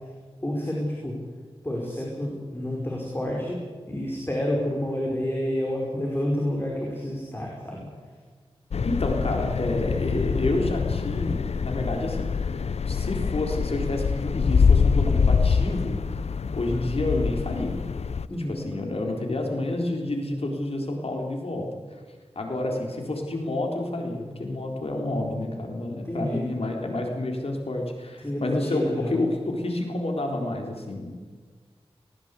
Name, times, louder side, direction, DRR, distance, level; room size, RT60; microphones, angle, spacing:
voice 1, 0.4-1.2 1.6-3.6 3.9-7.9 18.3-18.7 26.1-26.4 28.2-29.2, left 1 dB, 20° left, -2 dB, 5.3 m, -29 dB
sound 1, 8.7-18.3, left 5 dB, 85° left, 0.6 m, -25 dB
voice 2, 8.8-12.5 12.8-16.0 16.5-17.8 18.3-21.7 22.4-31.2, left 2 dB, 70° left, 2 dB, 4.0 m, -29 dB
20.0 x 19.5 x 8.4 m, 1.5 s
wide cardioid pair, 80°, 11 cm